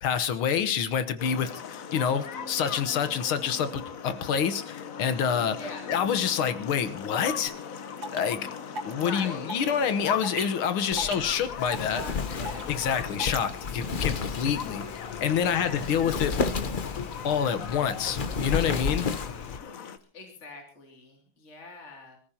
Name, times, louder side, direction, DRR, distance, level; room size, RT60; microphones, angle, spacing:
voice 1, 0.0-5.6 5.9-7.5 8.1-8.5 8.9-12.0 12.7-14.8 15.2-16.6 17.2-19.1, left 7 dB, 85° left, 11 dB, 2.0 m, -27 dB
sound 1, 1.2-20.0, left 7 dB, 50° left, 1.2 m, -39 dB
voice 2, 5.5-5.9 8.8-9.5 10.8-11.4 11.8-12.7 15.4-15.9 20.0-22.2, left 3 dB, 35° left, 1 dB, 2.9 m, -43 dB
sound 2, 7.5-7.6 8.0-8.2 8.8-9.0 9.5-9.7 10.2-10.5 11.0-11.3 11.7-11.9 12.5-12.7 13.1-13.4, right 2 dB, 60° right, 2.6 m, -35 dB
Wind, 10.9-19.6, left 5 dB, 70° left, 0.4 m, -33 dB
25.5 x 14.0 x 2.8 m, 0.38 s
omnidirectional pair, 2.3 m